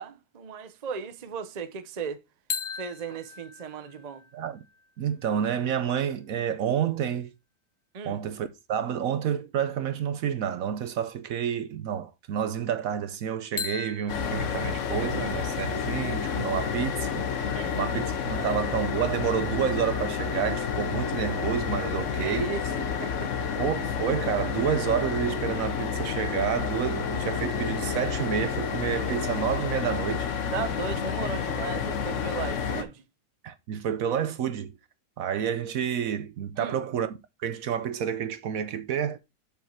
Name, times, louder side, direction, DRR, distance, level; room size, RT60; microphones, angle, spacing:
voice 1, 0.0-2.2 2.8-4.2 7.9-8.2 17.5-18.0 18.4-18.6 22.2-23.3 30.5-33.0 36.6-36.8, right 6 dB, 40° right, 0.6 m, -36 dB
sound 1, 2.5-6.3 13.6-17.4, left 7 dB, 80° left, 1.7 m, -41 dB
voice 2, 4.3-4.6 5.0-7.3 8.0-17.1 17.3-22.5 23.6-30.3 33.4-34.7 35.2-39.2, right 8 dB, 65° right, 1.0 m, -29 dB
sound 2, 14.1-32.8, left 6 dB, 55° left, 1.2 m, -30 dB
6.9 x 5.7 x 4.5 m
omnidirectional pair, 1.7 m